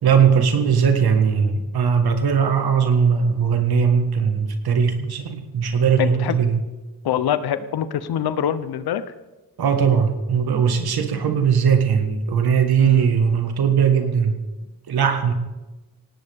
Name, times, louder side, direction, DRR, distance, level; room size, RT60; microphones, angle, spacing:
voice 1, 0.0-6.6 9.6-14.4 14.9-15.3, right 6 dB, 85° right, 6 dB, 1.7 m, -19 dB
voice 2, 6.0-6.4 7.0-9.0 12.8-13.1, left 9 dB, 85° left, 13 dB, 0.8 m, -24 dB
18.0 x 17.5 x 3.6 m, 1.1 s
cardioid pair, 50°, 37 cm